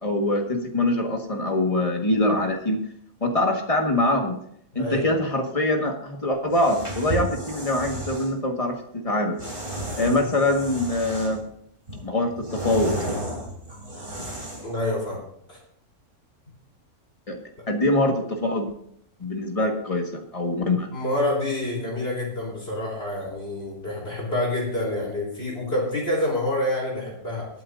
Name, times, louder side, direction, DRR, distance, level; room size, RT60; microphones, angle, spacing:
voice 1, 0.0-2.8 3.2-4.4 4.7-9.4 10.0-11.4 12.0-13.0 17.3-17.4 17.7-18.7 19.2-20.9, left 1 dB, 25° left, 2 dB, 1.7 m, -24 dB
voice 2, 4.7-5.2 10.0-10.3 14.6-15.2 15.5-15.6 19.6-19.7 20.9-27.5, left 1 dB, 40° left, -3 dB, 4.1 m, -27 dB
sound 1, 6.5-8.3 9.4-11.5 11.9-14.8, right 1 dB, 35° right, 3.6 m, -33 dB
21.5 x 8.7 x 2.7 m, 0.68 s
omnidirectional pair, 1.6 m